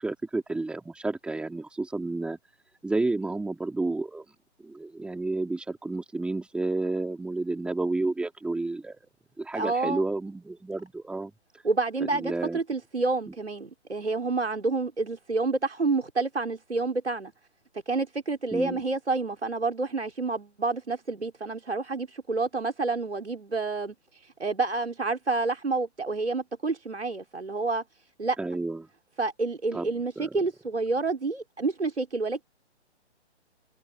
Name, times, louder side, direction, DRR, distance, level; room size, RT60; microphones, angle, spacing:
voice 1, 0.0-2.4 2.8-4.2 4.6-9.0 9.4-11.3 12.0-12.6 13.3-13.4 18.5-18.8 28.4-28.9 29.7-29.9 30.2-30.5, right 2 dB, 5° right, 3.7 m, -31 dB
voice 2, 9.5-10.0 11.6-17.3 17.9-27.8 28.2-28.4 29.2-32.4, right 3 dB, 70° right, 5.2 m, -29 dB
figure-of-eight pair, 135°, 35 cm